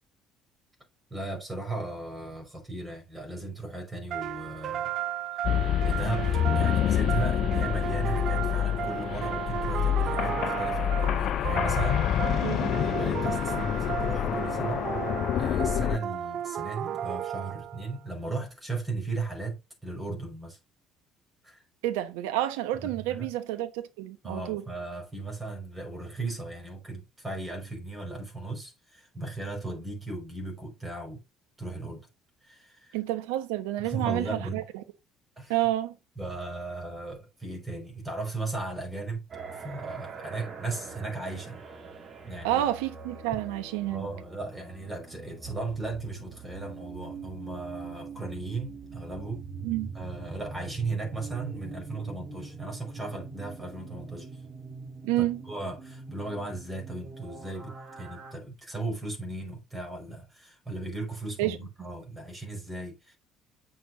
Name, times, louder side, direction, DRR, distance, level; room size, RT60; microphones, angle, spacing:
voice 1, 1.1-4.9 5.8-12.1 12.7-14.8 15.3-20.6 21.4-21.6 22.8-23.3 24.2-31.2 31.6-32.1 32.4-33.0 33.8-34.6 35.4-35.5 36.2-39.2 39.5-41.6 42.2-42.6 43.9-49.4 49.9-54.4 55.2-63.2, right 3 dB, 15° right, 5.0 m, -36 dB
sound 1, 4.1-18.0, right 10 dB, 55° right, 0.5 m, -34 dB
sound 2, 5.4-16.0, left 10 dB, 60° left, 0.4 m, -27 dB
voice 2, 12.4-12.7 21.8-24.6 32.9-34.6 35.5-35.9 42.4-44.1 49.6-49.9 55.0-55.4 61.4-61.6, right 14 dB, 75° right, 1.0 m, -29 dB
sound 3, 39.3-58.3, right 4 dB, 40° right, 2.4 m, -43 dB
9.0 x 6.5 x 2.6 m
hypercardioid pair, 60°, 0 cm